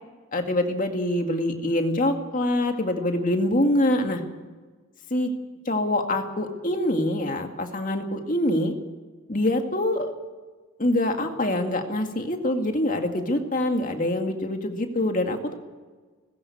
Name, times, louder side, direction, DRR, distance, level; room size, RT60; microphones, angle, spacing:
voice 1, 0.3-4.2 5.1-5.3 5.7-8.7 9.3-10.1 10.8-15.5, left 1 dB, 40° left, 5 dB, 2.1 m, -25 dB
19.5 x 16.0 x 8.5 m, 1.4 s
head